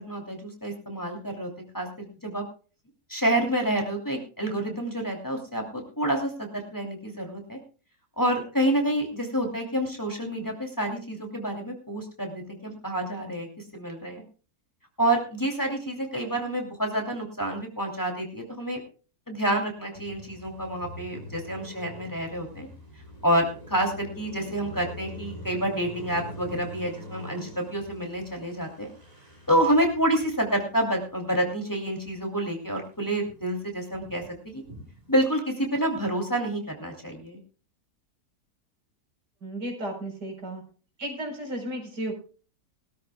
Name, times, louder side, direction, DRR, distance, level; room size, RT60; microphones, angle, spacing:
voice 1, 0.0-2.4 3.1-7.6 8.2-13.5 13.7-14.2 15.0-18.8 19.3-22.7 23.2-28.9 29.5-34.6 35.1-37.4, right 1 dB, 10° left, 1 dB, 2.8 m, -28 dB
Car passing by, 19.9-32.4 32.8-35.3, equal, 20° right, 4.0 m, -44 dB
voice 2, 39.4-40.6 41.0-42.2, right 1 dB, 85° right, 2 dB, 4.9 m, -34 dB
21.5 x 13.0 x 2.3 m, 0.37 s
omnidirectional pair, 1.7 m